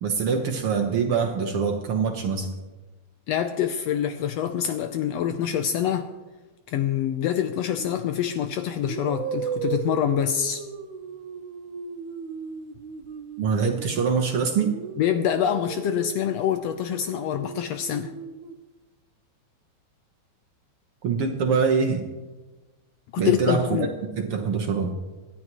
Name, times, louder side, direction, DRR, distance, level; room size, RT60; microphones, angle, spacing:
voice 1, 0.0-2.5 13.4-14.8 21.0-22.0 23.2-23.8 24.2-25.0, right 5 dB, 60° right, 1.7 m, -24 dB
voice 2, 3.3-6.1 6.7-10.6 15.0-18.1 23.1-23.9, left 9 dB, 75° left, 1.6 m, -26 dB
sound 1, 7.8-8.0 8.8-14.2 14.6-18.5, right 7 dB, 80° right, 2.2 m, -36 dB
27.0 x 11.0 x 3.0 m
omnidirectional pair, 3.4 m